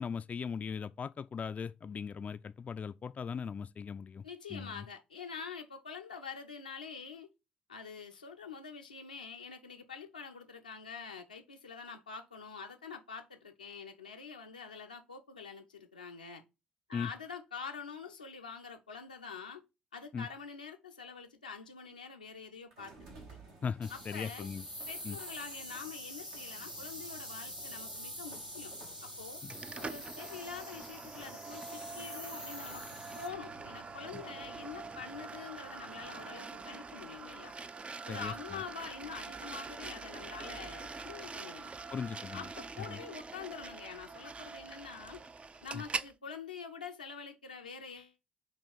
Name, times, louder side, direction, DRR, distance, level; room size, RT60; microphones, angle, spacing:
voice 1, 0.0-4.2 4.5-4.8 16.9-17.1 20.1-20.3 23.6-24.6 25.0-25.2 29.4-29.5 38.1-38.3 41.9-42.4 42.9-43.0 45.7-45.8, left 6 dB, 35° left, 0.4 m, -38 dB
voice 2, 4.2-7.3 7.7-16.4 16.9-19.6 19.9-22.9 23.9-24.5 24.9-28.7 29.0-29.4 29.8-32.8 33.1-37.5 38.1-41.7 42.3-45.2 45.6-48.1, left 6 dB, 85° left, 0.6 m, -46 dB
sound 1, 22.7-36.4, right 3 dB, 70° right, 1.4 m, -56 dB
sound 2, 23.8-33.3, equal, 90° right, 0.8 m, -46 dB
sound 3, 29.5-46.1, right 4 dB, 25° right, 0.4 m, -44 dB
8.8 x 3.0 x 5.2 m
figure-of-eight pair, 45°, 4 cm